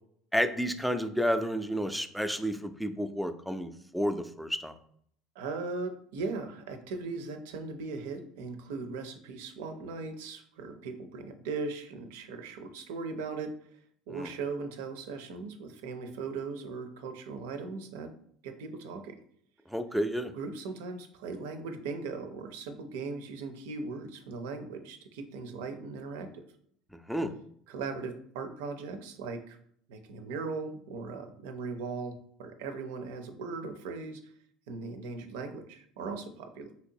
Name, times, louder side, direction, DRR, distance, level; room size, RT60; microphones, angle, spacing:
voice 1, 0.3-4.7 14.1-14.3 19.7-20.3 27.1-27.3, equal, ahead, 8 dB, 0.3 m, -31 dB
voice 2, 5.4-13.5 14.1-18.1 18.4-19.2 20.3-26.4 27.7-29.6 29.9-32.1 32.4-34.3 34.7-36.7, right 4 dB, 75° right, 8 dB, 0.4 m, -38 dB
3.2 x 2.8 x 2.7 m, 0.64 s
hypercardioid pair, 70°, 0 cm